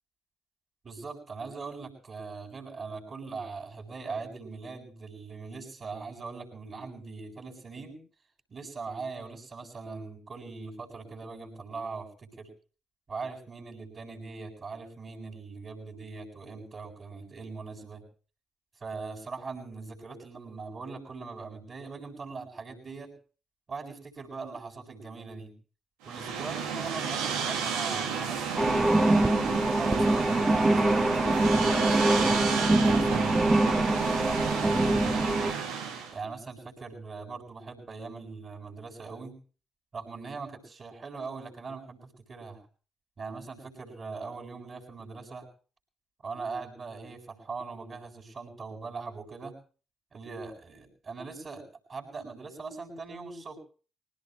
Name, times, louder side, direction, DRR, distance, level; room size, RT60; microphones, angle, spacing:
voice 1, 0.8-8.0 8.5-12.5 13.1-18.0 18.8-23.1 23.7-25.5 26.0-29.3 29.8-35.4 36.1-39.4 39.9-42.6 43.2-45.5 46.2-49.6 50.1-53.6, right 4 dB, 45° right, 1 dB, 7.8 m, -41 dB
sound 1, 26.0-36.2, right 6 dB, 90° right, 2.3 m, -32 dB
sound 2, 28.6-35.5, right 2 dB, 20° right, 1.0 m, -24 dB
22.0 x 19.0 x 3.2 m, 0.39 s
supercardioid pair, 60°, 0 cm